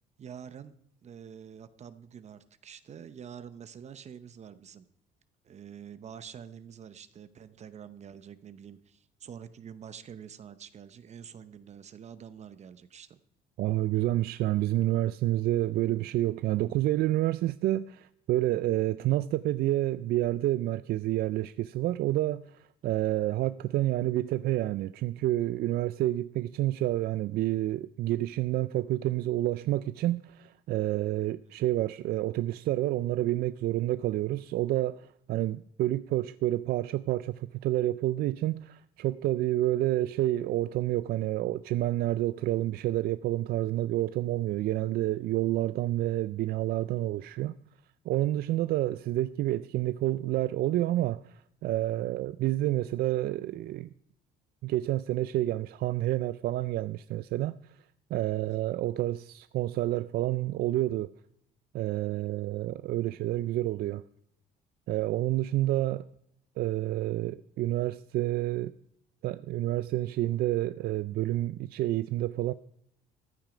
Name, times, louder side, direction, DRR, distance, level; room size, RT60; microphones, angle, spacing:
voice 1, 0.2-0.7 1.0-4.8 5.4-13.2, right 8 dB, 40° right, 0.7 m, -47 dB
voice 2, 13.6-47.5 48.1-53.9 54.6-57.6 58.1-61.1 61.7-64.0 64.9-66.0 66.6-68.7 69.2-72.5, right 15 dB, 65° right, 0.4 m, -29 dB
14.5 x 9.0 x 5.1 m
cardioid pair, 110°, 17 cm